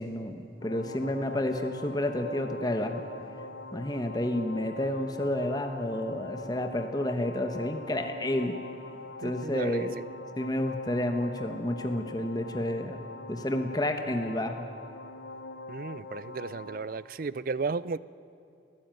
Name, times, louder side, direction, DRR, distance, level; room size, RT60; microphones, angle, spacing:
voice 1, 0.0-3.0 3.7-8.6 9.2-10.0 10.4-13.0 13.3-14.7, left 1 dB, 20° left, 6 dB, 1.1 m, -30 dB
sound 1, 0.6-16.8, left 2 dB, 90° left, 1.7 m, -43 dB
voice 2, 9.2-9.9 15.7-18.0, right 4 dB, 45° right, 19 dB, 0.4 m, -34 dB
20.0 x 15.0 x 9.1 m, 2.6 s
head